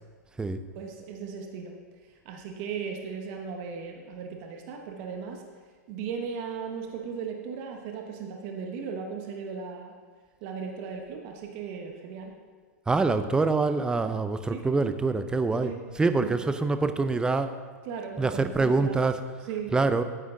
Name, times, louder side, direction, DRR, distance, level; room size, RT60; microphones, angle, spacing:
voice 1, 0.7-1.8 2.0-5.4 5.9-9.9 10.4-12.3 14.5-14.7 15.6-15.8 16.2-16.3 17.8-19.1 19.4-19.7, right 6 dB, 50° right, 2 dB, 1.1 m, -37 dB
voice 2, 12.9-15.7 16.0-17.5 18.2-19.1 19.7-20.0, right 3 dB, 10° right, 10 dB, 0.5 m, -25 dB
9.2 x 8.5 x 3.8 m, 1.5 s
hypercardioid pair, 125°, 9 cm